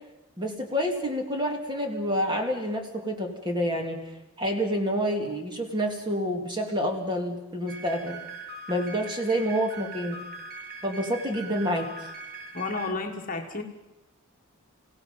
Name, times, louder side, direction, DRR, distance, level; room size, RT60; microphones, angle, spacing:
voice 1, 0.4-4.0 4.4-8.2 8.7-10.2 10.8-12.1, equal, 20° right, 3 dB, 2.3 m, -28 dB
sound 1, 7.7-12.9, right 3 dB, 40° right, 2.0 m, -41 dB
voice 2, 12.5-13.6, left 3 dB, 35° left, 3 dB, 1.5 m, -31 dB
28.5 x 16.5 x 5.5 m, 1.0 s
head